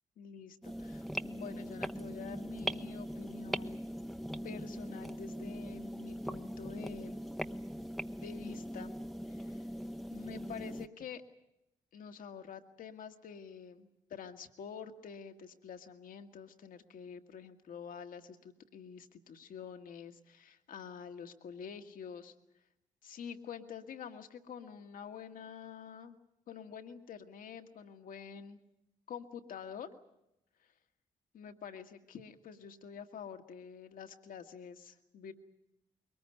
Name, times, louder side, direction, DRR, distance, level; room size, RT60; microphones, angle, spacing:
voice 1, 0.2-3.8 4.4-7.2 8.2-8.9 9.3-9.7 10.1-11.2 11.9-22.3 23.0-26.2 26.5-28.6 29.1-29.9 30.6-30.7 31.3-35.3, left 7 dB, 65° left, 6 dB, 1.6 m, -47 dB
sound 1, 0.6-10.9, equal, ahead, 1.0 m, -41 dB
22.5 x 19.5 x 9.3 m, 0.85 s
hypercardioid pair, 40°, 15 cm